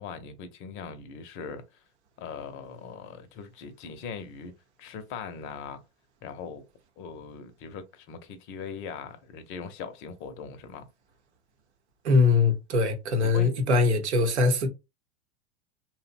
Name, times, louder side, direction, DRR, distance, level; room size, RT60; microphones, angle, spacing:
voice 1, 0.0-1.6 2.2-4.5 4.8-5.8 6.2-6.6 7.0-10.9 13.2-13.5, left 6 dB, 40° left, 0.6 m, -40 dB
voice 2, 12.0-14.7, left 4 dB, 85° right, 0.8 m, -22 dB
2.7 x 2.1 x 2.4 m
hypercardioid pair, 100°, 33 cm